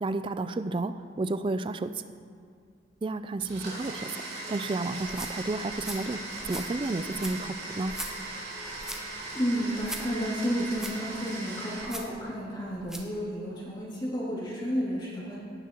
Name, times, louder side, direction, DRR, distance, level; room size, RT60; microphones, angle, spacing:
voice 1, 0.0-1.9 3.0-6.2 6.5-7.9, right 2 dB, 25° right, 11 dB, 0.3 m, -31 dB
Domestic sounds home sounds, 3.4-11.9, right 2 dB, 60° right, 3.3 m, -39 dB
sound 1, 5.0-13.1, right 1 dB, 5° right, 0.7 m, -43 dB
voice 2, 9.3-15.4, equal, 25° left, -7 dB, 2.2 m, -31 dB
17.5 x 9.7 x 2.9 m, 2.2 s
head